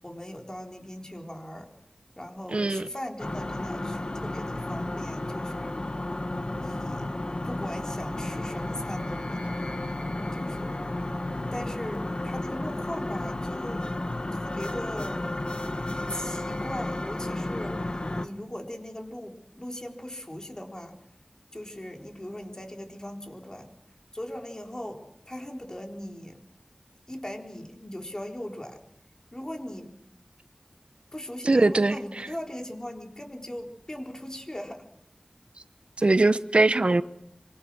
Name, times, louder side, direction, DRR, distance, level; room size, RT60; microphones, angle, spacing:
voice 1, 0.0-1.7 2.2-5.8 6.5-7.1 7.4-9.6 10.3-11.0 11.5-13.8 14.3-15.2 16.1-21.0 21.5-23.7 24.1-25.0 25.3-26.4 27.1-28.8 29.3-29.9 31.1-34.9, left 1 dB, 30° left, 4.1 m, -39 dB
voice 2, 2.5-2.9 31.4-32.0 36.0-37.0, right 2 dB, 65° right, 0.9 m, -21 dB
sound 1, 3.2-18.3, left 1 dB, 50° left, 1.6 m, -32 dB
25.5 x 23.5 x 6.4 m
wide cardioid pair, 50°, 2 cm